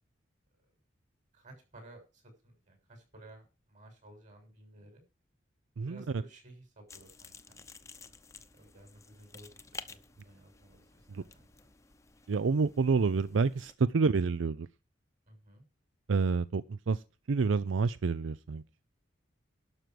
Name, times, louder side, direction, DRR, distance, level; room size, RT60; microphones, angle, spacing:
voice 1, 1.3-5.0 5.8-8.1 8.5-9.5 9.9-11.5 15.3-15.6, right 1 dB, 40° right, 3 dB, 6.7 m, -55 dB
voice 2, 5.8-6.2 11.1-11.2 12.3-14.7 16.1-18.6, right 4 dB, 85° right, 16 dB, 0.5 m, -28 dB
sound 1, 6.9-13.8, left 4 dB, 15° left, 0.8 m, -52 dB
12.0 x 6.2 x 7.7 m, 0.31 s
head